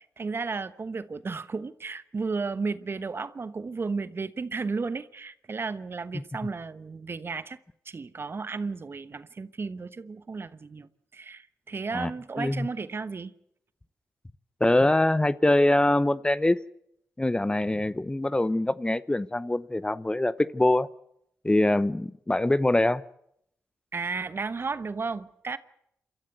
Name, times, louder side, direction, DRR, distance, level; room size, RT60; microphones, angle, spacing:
voice 1, 0.0-7.6 7.8-13.3 23.9-25.6, right 4 dB, 45° right, 1.1 m, -33 dB
voice 2, 14.6-16.6 17.2-20.9 21.4-23.0, left 1 dB, 15° left, 0.7 m, -23 dB
28.0 x 13.5 x 8.0 m
supercardioid pair, 50°, 6 cm